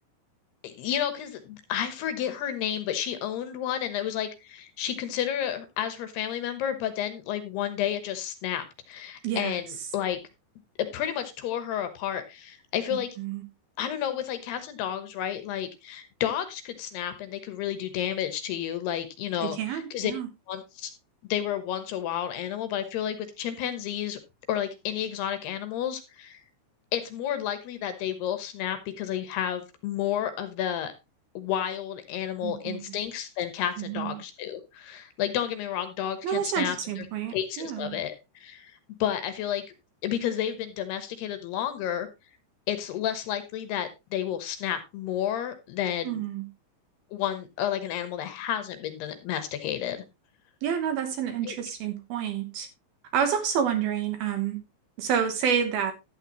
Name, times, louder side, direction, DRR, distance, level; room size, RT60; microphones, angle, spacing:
voice 1, 0.6-10.2 10.8-13.2 13.8-20.1 20.5-20.9 21.2-24.2 24.5-26.4 26.9-30.9 31.3-37.1 37.3-39.6 40.0-42.1 42.7-46.2 47.1-50.0 51.4-51.5, left 10 dB, 70° left, 10 dB, 2.9 m, -31 dB
voice 2, 12.9-13.4 19.4-20.3 32.4-32.9 33.8-34.2 36.2-38.0 46.0-46.5 50.6-52.7 53.1-54.6 55.0-55.9, right 8 dB, 65° right, 7 dB, 2.7 m, -29 dB
12.0 x 9.0 x 3.0 m, 0.25 s
omnidirectional pair, 5.3 m